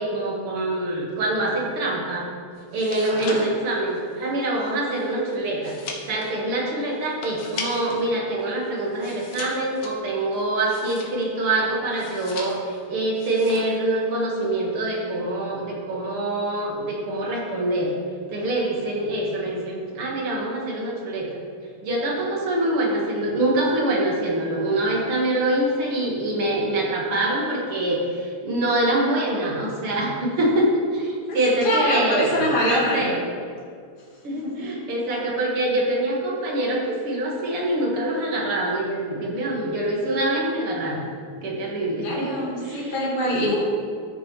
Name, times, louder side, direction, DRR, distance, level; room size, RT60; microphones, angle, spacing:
voice 1, 0.0-2.3 2.7-17.9 18.3-21.3 21.8-33.2 34.2-41.0 41.4-43.0, right 1 dB, 80° right, -3 dB, 2.6 m, -25 dB
sound 1, 2.6-8.1 8.4-11.4 11.9-12.8 13.1-13.8 14.1-14.5, left 4 dB, 80° left, 2.0 m, -38 dB
voice 2, 3.0-3.5 31.3-33.1 34.3-34.7 42.0-43.6, equal, 25° left, -6 dB, 1.8 m, -25 dB
14.0 x 6.6 x 3.1 m, 2.2 s
omnidirectional pair, 2.4 m